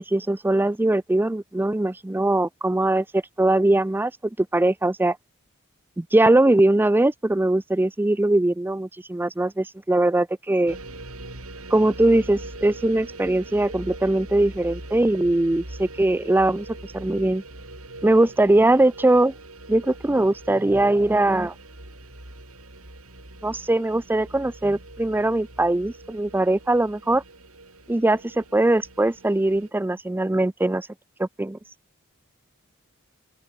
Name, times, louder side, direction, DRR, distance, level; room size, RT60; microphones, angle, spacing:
voice 1, 0.0-4.1 4.5-5.2 6.0-10.8 11.7-16.7 16.9-17.4 18.0-19.3 19.7-21.5 23.4-27.2 27.9-30.9 31.2-31.6, right 2 dB, 10° right, 0.4 m, -21 dB
sound 1, 10.7-29.7, right 2 dB, 90° right, 8.0 m, -42 dB
open air
head